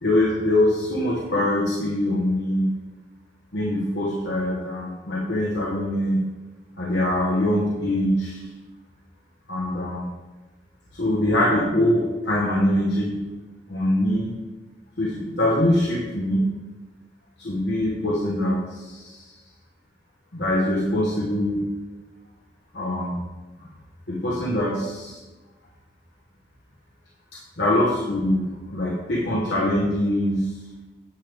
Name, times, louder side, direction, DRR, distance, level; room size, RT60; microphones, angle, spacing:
voice 1, 0.0-2.7 3.5-6.3 6.8-8.4 9.5-10.1 10.9-13.2 13.7-14.3 15.0-16.5 17.4-19.2 20.3-21.7 22.7-23.2 23.6-23.7 24.1-25.1 27.6-30.5, left 1 dB, 75° left, -4 dB, 1.4 m, -23 dB
9.7 x 3.5 x 7.0 m, 1.2 s
head